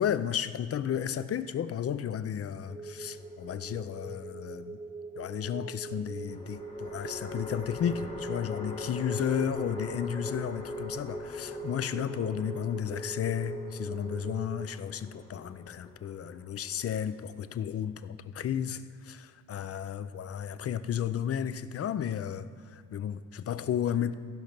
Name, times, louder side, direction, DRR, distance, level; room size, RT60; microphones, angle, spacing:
voice 1, 0.0-4.8 5.2-24.1, left 9 dB, 50° left, 13 dB, 0.5 m, -33 dB
sound 1, 2.7-14.7, right 4 dB, 20° right, 0.5 m, -42 dB
sound 2, 3.2-4.0 6.3-17.6, left 3 dB, 20° left, 1.1 m, -43 dB
14.5 x 5.2 x 5.9 m, 2.1 s
cardioid pair, 105°, 31 cm